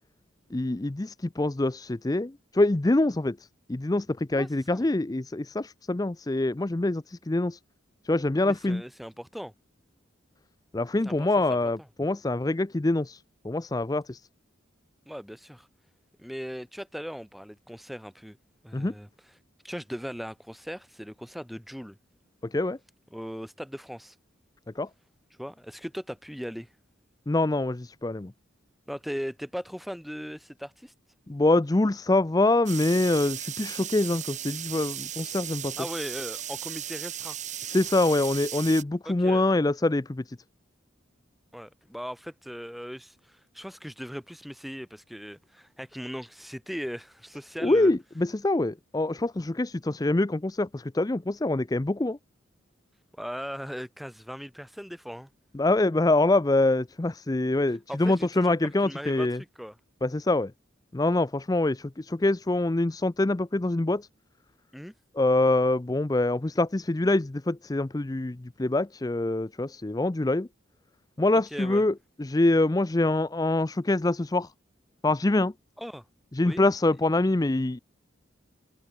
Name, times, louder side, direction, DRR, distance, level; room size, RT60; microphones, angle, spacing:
voice 1, 0.5-3.4 3.7-7.6 8.0-8.8 10.7-14.2 18.7-18.9 22.5-22.8 24.8-24.9 27.3-28.3 31.3-35.7 37.7-40.4 47.6-52.2 55.5-59.4 60.0-60.5 60.9-64.1 65.2-70.5 71.2-71.9 72.2-74.5 75.0-75.5 76.3-77.8, left 2 dB, 20° left, 0.5 m, -25 dB
voice 2, 4.3-4.8 8.4-9.5 11.0-11.7 15.1-15.7 16.2-18.4 18.6-19.3 19.6-22.0 23.1-24.1 25.4-26.7 28.9-30.9 35.8-37.4 39.0-39.4 41.5-47.9 53.2-55.3 57.9-58.5 58.8-59.8 64.7-64.9 71.3-71.8 75.8-76.0 76.4-76.7, equal, ahead, 4.6 m, -38 dB
sound 1, 32.7-38.8, right 10 dB, 40° right, 5.2 m, -36 dB
head